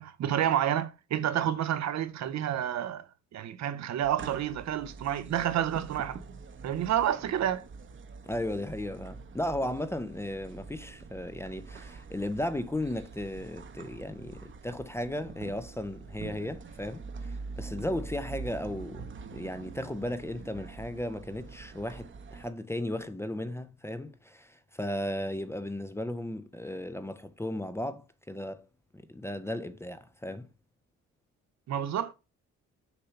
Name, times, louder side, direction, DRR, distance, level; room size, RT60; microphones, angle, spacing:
voice 1, 0.0-3.1 3.3-6.2 6.6-7.6 31.7-32.1, right 10 dB, 65° right, 0.7 m, -29 dB
sound 1, 4.0-22.5, right 4 dB, 40° right, 0.9 m, -45 dB
voice 2, 8.3-19.1 19.3-28.6 28.9-30.5, left 1 dB, 10° left, 0.6 m, -35 dB
6.7 x 2.8 x 5.6 m
cardioid pair, 90°, 30 cm